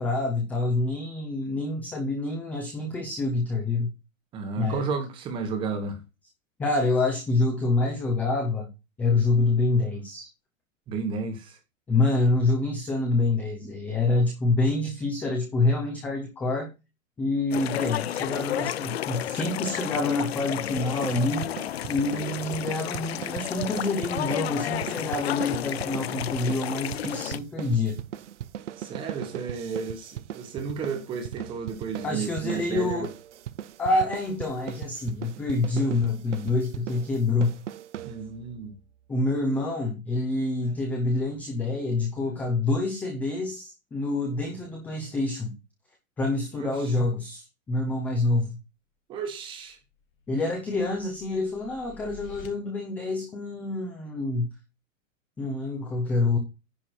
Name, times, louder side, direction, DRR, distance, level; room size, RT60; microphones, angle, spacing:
voice 1, 0.0-3.9 4.6-4.8 6.6-8.7 9.0-10.3 11.9-16.7 17.2-21.5 21.9-28.0 32.0-33.1 33.8-37.6 39.1-45.6 46.2-48.6 50.3-54.5 55.4-56.4, left 2 dB, 5° left, 0.7 m, -27 dB
voice 2, 4.3-6.0 10.9-11.6 28.8-33.1 38.0-38.8 46.5-47.0 49.1-49.8, right 5 dB, 10° right, 1.3 m, -33 dB
sound 1, 17.5-27.4, left 12 dB, 50° left, 0.5 m, -32 dB
sound 2, 20.8-38.5, right 11 dB, 60° right, 0.8 m, -39 dB
sound 3, 49.7-52.5, left 5 dB, 85° left, 3.5 m, -49 dB
10.0 x 5.8 x 4.4 m
hypercardioid pair, 175°, 40 cm